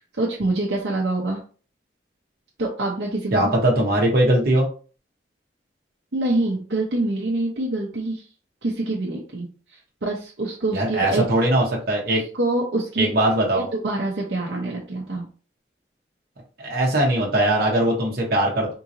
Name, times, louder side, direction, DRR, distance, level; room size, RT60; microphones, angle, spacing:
voice 1, 0.2-1.4 2.6-3.5 6.1-8.3 8.6-9.5 10.0-11.2 12.3-13.1 13.5-15.3, right 2 dB, 85° right, -3 dB, 0.8 m, -25 dB
voice 2, 3.3-4.7 10.7-12.2 13.0-13.7 16.6-18.7, right 1 dB, 55° right, -2 dB, 1.0 m, -20 dB
3.7 x 2.9 x 2.6 m, 0.39 s
head